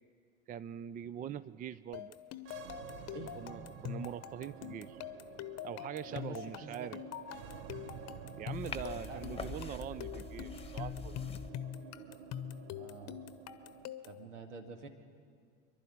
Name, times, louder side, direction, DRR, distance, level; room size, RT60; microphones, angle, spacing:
voice 1, 0.5-2.1 3.4-5.0 5.6-7.0 8.4-11.2, right 9 dB, 25° right, 17 dB, 0.4 m, -43 dB
sound 1, 1.9-14.2, left 11 dB, 45° left, 0.9 m, -44 dB
sound 2, 2.4-13.9, right 7 dB, 60° right, 1.1 m, -50 dB
voice 2, 6.1-6.9 9.0-10.3 12.8-13.2 14.0-14.9, right 4 dB, 80° right, 5 dB, 2.0 m, -49 dB
sound 3, 8.5-11.5, left 5 dB, 15° left, 1.2 m, -45 dB
24.5 x 11.5 x 9.8 m, 2.1 s
hypercardioid pair, 75°, 35 cm